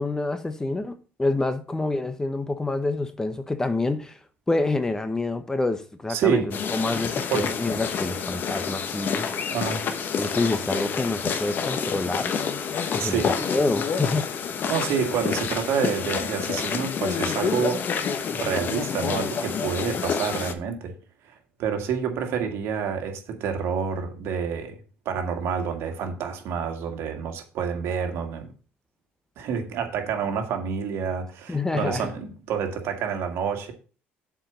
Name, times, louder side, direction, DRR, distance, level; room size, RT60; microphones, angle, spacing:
voice 1, 0.0-4.2 4.5-9.4 10.2-12.3 12.9-14.3 31.5-32.1, left 2 dB, 15° left, 0.8 m, -27 dB
voice 2, 6.1-6.6 7.3-7.6 9.5-9.9 13.0-13.3 14.7-17.9 18.3-21.0 21.2-21.3 21.6-24.8 25.1-28.5 29.4-33.7, right 7 dB, 70° right, 1.9 m, -28 dB
sound 1, 6.5-20.5, left 6 dB, 50° left, 1.1 m, -28 dB
7.4 x 4.6 x 6.9 m
cardioid pair, 115°, 4 cm